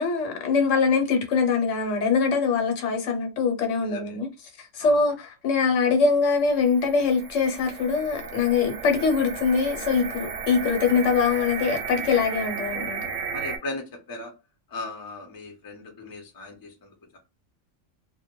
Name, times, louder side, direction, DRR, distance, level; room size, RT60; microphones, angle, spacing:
voice 1, 0.0-4.3 4.6-13.0, left 5 dB, 80° left, 1.0 m, -23 dB
voice 2, 3.8-4.2 4.8-5.0 13.3-14.3 14.7-17.2, left 2 dB, 25° left, 0.5 m, -38 dB
sound 1, 6.1-13.6, right 6 dB, 85° right, 0.9 m, -34 dB
2.1 x 2.1 x 2.9 m
omnidirectional pair, 1.3 m